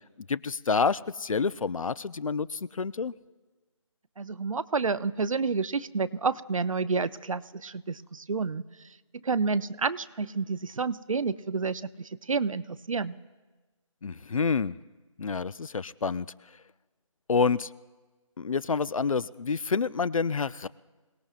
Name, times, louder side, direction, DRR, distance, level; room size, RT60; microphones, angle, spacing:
voice 1, 0.3-3.1 14.0-14.8 15.2-16.3 17.3-17.7 18.4-20.7, left 5 dB, 75° left, 19 dB, 0.5 m, -28 dB
voice 2, 4.2-8.6 9.2-13.2, right 4 dB, 70° right, 15 dB, 0.6 m, -29 dB
27.5 x 18.0 x 2.4 m, 1.3 s
figure-of-eight pair, 180°, 17 cm